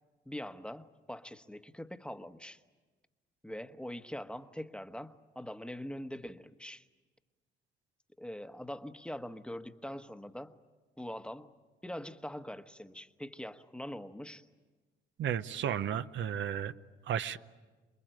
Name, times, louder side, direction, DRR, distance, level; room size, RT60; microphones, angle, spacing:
voice 1, 0.2-2.6 3.4-6.9 8.2-10.5 11.0-11.5 11.8-14.4, left 1 dB, 5° left, 1.1 m, -43 dB
voice 2, 15.2-16.7 17.0-17.4, right 9 dB, 70° right, 0.8 m, -33 dB
28.5 x 21.0 x 9.0 m
cardioid pair, 90°, 20 cm